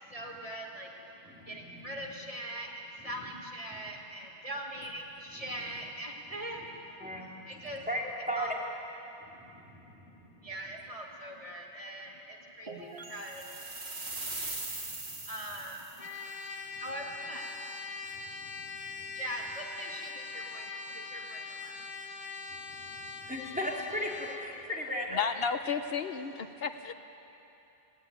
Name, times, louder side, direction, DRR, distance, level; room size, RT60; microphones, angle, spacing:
voice 1, 0.1-0.9 1.5-6.7 7.5-7.8 8.3-8.5 10.4-13.4 15.3-16.1 16.8-17.4 19.2-21.8, right 1 dB, 35° right, -1 dB, 2.1 m, -41 dB
voice 2, 1.2-1.9 5.3-5.4 7.0-8.0 8.3-8.6 9.2-10.5 14.0-15.3 16.7-16.8 18.1-19.2 22.5-25.2, equal, 10° right, -3 dB, 3.4 m, -39 dB
sound 1, 12.7-20.2, right 4 dB, 65° right, 2.0 m, -53 dB
sound 2, 13.2-16.2, right 2 dB, 80° right, 2.7 m, -40 dB
Trumpet, 16.0-24.5, left 4 dB, 45° left, 1.3 m, -42 dB
voice 3, 25.1-26.9, left 6 dB, 70° left, 9 dB, 1.0 m, -32 dB
20.0 x 18.0 x 9.2 m, 3.0 s
omnidirectional pair, 1.1 m